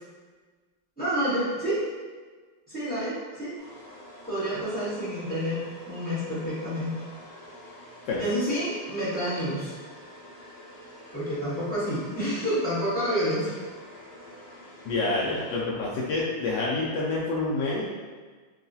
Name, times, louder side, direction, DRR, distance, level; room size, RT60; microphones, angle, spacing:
voice 1, 1.0-1.8 2.7-3.5 4.3-5.6 5.9-6.9 8.2-9.7 11.1-13.6, equal, 10° left, -13 dB, 0.6 m, -28 dB
sound 1, 3.6-15.9, equal, 60° left, 0.4 m, -47 dB
voice 2, 14.8-17.8, left 3 dB, 85° left, -5 dB, 0.9 m, -27 dB
3.7 x 2.3 x 2.6 m, 1.4 s
omnidirectional pair, 2.4 m